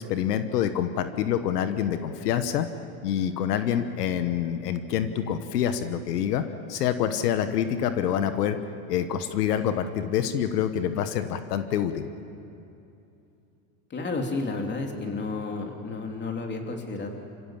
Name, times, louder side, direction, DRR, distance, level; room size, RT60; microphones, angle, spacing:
voice 1, 0.1-2.7 3.0-6.4 6.7-8.6 8.9-12.1, left 9 dB, 90° left, 9 dB, 1.3 m, -26 dB
voice 2, 13.9-17.1, left 3 dB, 25° left, 3 dB, 3.0 m, -31 dB
28.0 x 16.0 x 7.4 m, 2.8 s
supercardioid pair, 115°, 46 cm